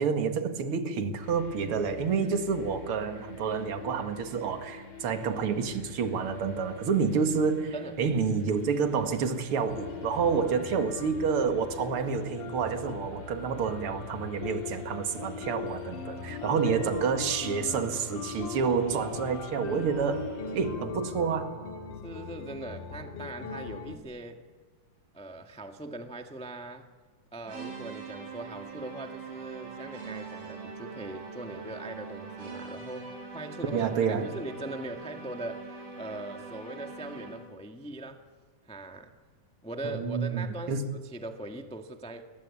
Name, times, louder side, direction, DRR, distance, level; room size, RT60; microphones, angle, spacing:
voice 1, 0.0-20.3 20.5-21.5 33.7-34.3 39.8-40.8, right 5 dB, 45° right, 2.4 m, -29 dB
sound 1, 1.2-20.7, left 4 dB, 50° left, 6.0 m, -47 dB
sound 2, 9.7-24.0, left 6 dB, 70° left, 3.9 m, -40 dB
voice 2, 16.4-17.0 20.5-20.7 22.0-24.4 25.1-26.9 27.3-38.2 38.6-39.1 39.6-42.2, right 2 dB, 10° left, 0.3 m, -41 dB
sound 3, 27.5-37.6, right 4 dB, 90° right, 8.1 m, -43 dB
29.5 x 22.0 x 8.6 m
omnidirectional pair, 3.8 m